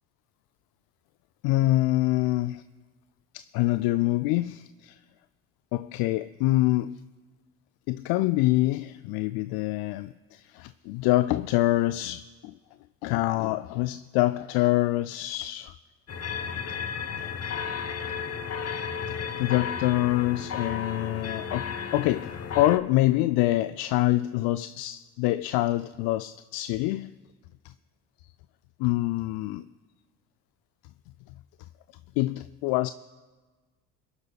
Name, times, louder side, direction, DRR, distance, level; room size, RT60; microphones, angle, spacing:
voice 1, 1.4-2.6 3.3-5.0 5.7-7.0 7.9-12.5 13.0-15.8 17.2-17.4 19.1-27.1 27.6-27.7 28.8-29.7 32.2-32.9, left 17 dB, 55° left, 0.5 m, -26 dB
sound 1, 16.1-22.8, left 7 dB, 30° left, 1.0 m, -33 dB
27.5 x 11.0 x 2.4 m
hypercardioid pair, 55°, 46 cm